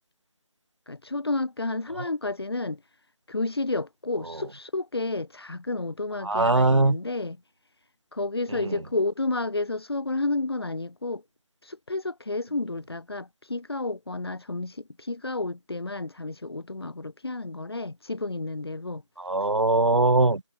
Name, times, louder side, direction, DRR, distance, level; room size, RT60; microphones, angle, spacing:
voice 1, 0.9-2.8 3.3-7.4 8.1-11.2 11.6-19.0, left 2 dB, 55° left, 6.3 m, -31 dB
voice 2, 6.2-7.0 8.5-8.8 19.2-20.4, right 2 dB, 80° right, 3.4 m, -21 dB
figure-of-eight pair, 180°, 15 cm